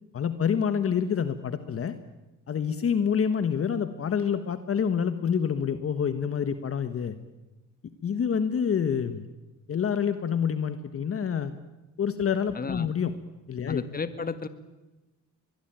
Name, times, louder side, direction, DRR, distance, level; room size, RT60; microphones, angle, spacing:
voice 1, 0.1-1.9 2.5-7.2 8.0-9.3 9.7-11.5 12.0-13.1 13.5-13.8, left 7 dB, 50° left, 10 dB, 1.5 m, -27 dB
voice 2, 12.6-12.9 13.7-14.5, left 4 dB, 30° left, 11 dB, 1.9 m, -33 dB
24.0 x 21.0 x 9.2 m, 1.1 s
cardioid pair, 90°, 30 cm